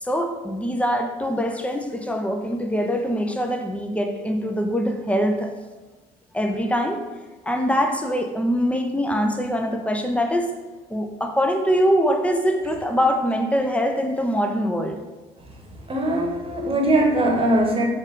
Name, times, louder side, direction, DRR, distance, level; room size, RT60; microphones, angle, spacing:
voice 1, 0.0-5.5 6.3-7.0 7.5-10.5 10.9-15.0, equal, 5° left, 5 dB, 0.5 m, -23 dB
voice 2, 15.9-17.9, right 1 dB, 30° right, -1 dB, 1.1 m, -20 dB
4.1 x 2.5 x 3.6 m, 1.2 s
hypercardioid pair, 50°, 20 cm